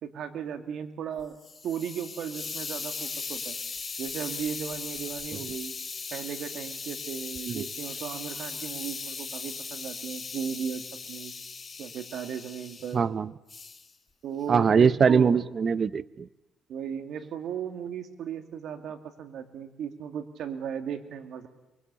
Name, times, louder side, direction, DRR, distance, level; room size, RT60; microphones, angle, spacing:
voice 1, 0.0-1.4 1.6-3.6 4.0-5.8 6.1-11.3 11.8-13.0 14.2-15.4 16.7-21.5, right 8 dB, 75° right, 8 dB, 2.4 m, -36 dB
Hiss, 1.2-12.9 13.5-13.9, left 4 dB, 30° left, 3.0 m, -38 dB
voice 2, 12.9-13.3 14.5-16.3, right 6 dB, 45° right, 17 dB, 0.8 m, -22 dB
23.5 x 23.5 x 8.4 m, 1.0 s
cardioid pair, 90°, 0 cm